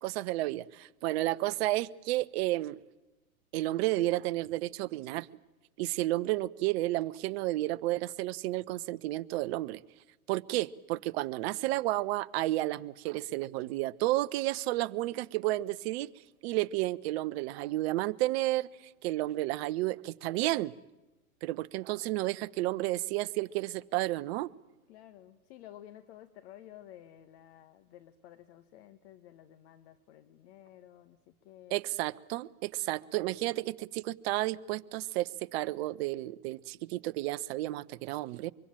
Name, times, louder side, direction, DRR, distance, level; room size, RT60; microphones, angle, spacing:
voice 1, 0.0-2.8 3.5-5.3 5.8-9.8 10.3-16.1 16.4-18.7 19.0-20.7 21.4-24.5 31.7-38.5, right 17 dB, 45° right, 15 dB, 0.9 m, -32 dB
voice 2, 24.9-31.8, left 12 dB, 50° left, 11 dB, 1.4 m, -53 dB
24.0 x 24.0 x 8.8 m, 1.0 s
hypercardioid pair, 105°, 44 cm